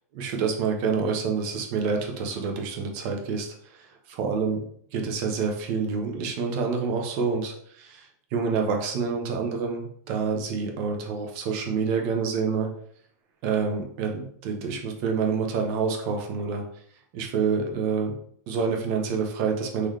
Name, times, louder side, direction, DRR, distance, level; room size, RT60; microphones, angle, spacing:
voice 1, 0.1-4.6 4.9-12.7 13.4-16.7 17.1-18.2 18.5-19.9, right 5 dB, 45° right, 3 dB, 0.9 m, -27 dB
3.9 x 2.9 x 3.3 m, 0.64 s
supercardioid pair, 140°, 10 cm